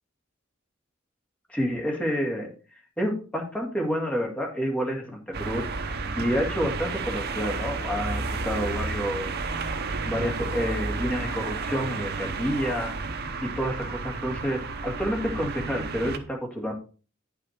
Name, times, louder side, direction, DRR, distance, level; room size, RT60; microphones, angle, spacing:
voice 1, 1.5-2.5 3.0-5.7 6.2-9.3 10.0-12.9 13.4-16.7, equal, 5° left, -1 dB, 2.3 m, -29 dB
sound 1, 5.3-16.2, right 3 dB, 50° right, 0.9 m, -32 dB
9.3 x 5.8 x 4.5 m, 0.35 s
head